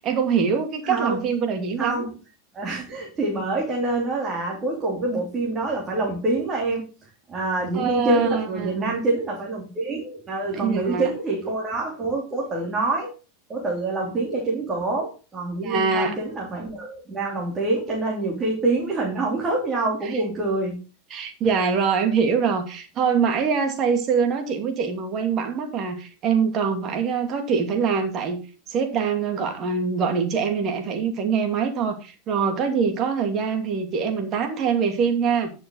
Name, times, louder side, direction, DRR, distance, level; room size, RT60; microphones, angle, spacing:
voice 1, 0.0-2.0 7.7-9.0 10.5-11.1 15.6-16.2 20.0-20.1 21.1-28.4 28.7-35.5, right 6 dB, 40° right, 5 dB, 2.6 m, -24 dB
voice 2, 0.8-1.2 1.8-2.1 2.5-6.9 7.3-13.1 13.5-20.8, right 2 dB, 25° right, -2 dB, 3.3 m, -26 dB
11.0 x 6.4 x 3.9 m, 0.34 s
supercardioid pair, 120°, 0 cm